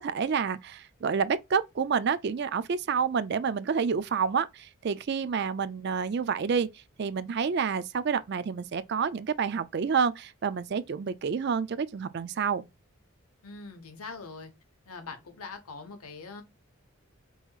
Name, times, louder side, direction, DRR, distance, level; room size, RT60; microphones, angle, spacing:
voice 1, 0.0-6.7 7.0-12.7, right 6 dB, 50° right, 0.4 m, -29 dB
voice 2, 13.4-14.5 14.9-16.4, left 4 dB, 85° left, 1.2 m, -42 dB
5.5 x 2.9 x 2.4 m
head